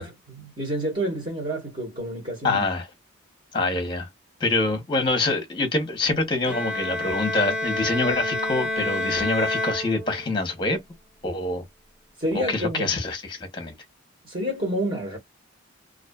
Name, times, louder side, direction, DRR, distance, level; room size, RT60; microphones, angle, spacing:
voice 1, 0.0-2.6 12.2-12.9 14.2-15.2, equal, 35° right, 1.2 m, -29 dB
voice 2, 2.4-2.9 3.5-4.1 4.4-10.8 11.2-11.6 12.3-13.7, left 2 dB, 20° left, 0.8 m, -25 dB
Bowed string instrument, 6.4-10.5, left 1 dB, 5° right, 1.1 m, -28 dB
2.5 x 2.3 x 2.2 m
head